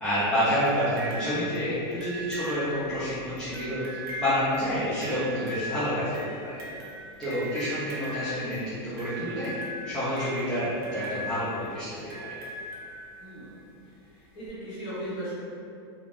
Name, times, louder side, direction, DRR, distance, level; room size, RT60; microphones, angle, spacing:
voice 1, 0.0-3.8 4.2-6.6 7.2-9.5 9.8-12.3, equal, 5° left, -14 dB, 0.4 m, -29 dB
sound 1, 0.7-13.5 14.5-14.6, equal, 55° right, 0.6 m, -39 dB
voice 2, 7.6-7.9 13.2-13.6 14.0-15.3, right 1 dB, 35° left, -10 dB, 1.0 m, -38 dB
2.5 x 2.2 x 3.2 m, 2.5 s
supercardioid pair, 175°, 14 cm